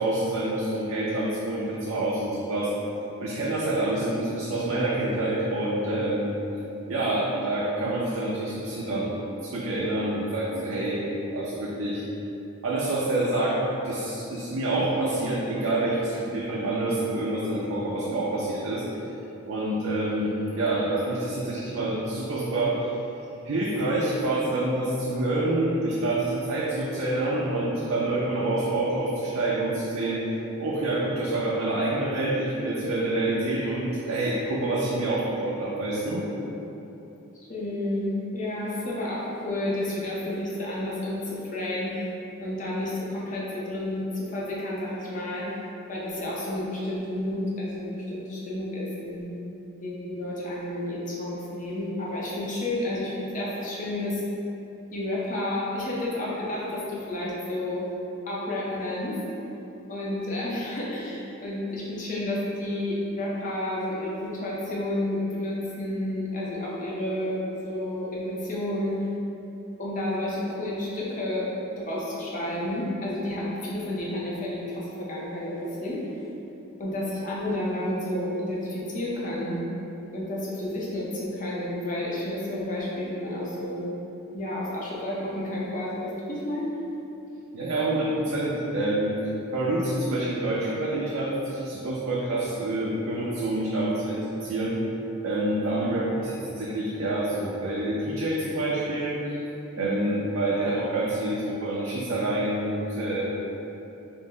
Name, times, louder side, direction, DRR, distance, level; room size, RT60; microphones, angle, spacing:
voice 1, 0.0-2.7 3.2-6.3 6.9-12.0 12.6-13.6 13.8-18.8 19.5-22.8 23.4-30.2 30.6-36.3 87.5-89.1 89.5-94.7 95.2-99.4 99.8-103.3, right 2 dB, 85° right, -6 dB, 0.5 m, -27 dB
voice 2, 37.5-42.1 42.4-45.5 45.9-49.3 49.8-54.2 54.9-57.8 58.3-59.2 59.9-69.0 69.8-71.5 71.8-76.0 76.8-79.6 80.1-83.8 84.3-86.6 99.8-100.0, left 1 dB, 35° left, -5 dB, 0.6 m, -31 dB
4.1 x 2.0 x 3.7 m, 3.0 s
head